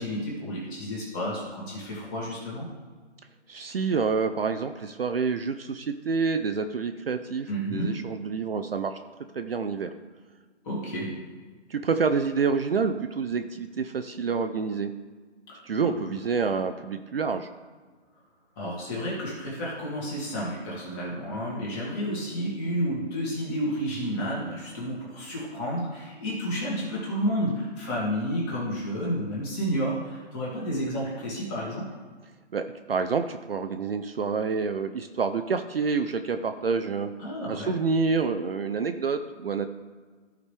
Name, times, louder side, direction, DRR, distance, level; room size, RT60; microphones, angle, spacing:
voice 1, 0.0-2.7 7.5-7.9 10.6-11.2 15.5-16.1 18.6-31.9 37.2-37.8, equal, 15° left, -5 dB, 2.0 m, -31 dB
voice 2, 3.5-9.0 9.3-9.9 11.7-14.9 15.6-17.5 32.5-37.1 37.5-39.7, right 5 dB, 55° right, 8 dB, 0.6 m, -28 dB
14.0 x 5.1 x 3.3 m, 1.5 s
hypercardioid pair, 160°, 36 cm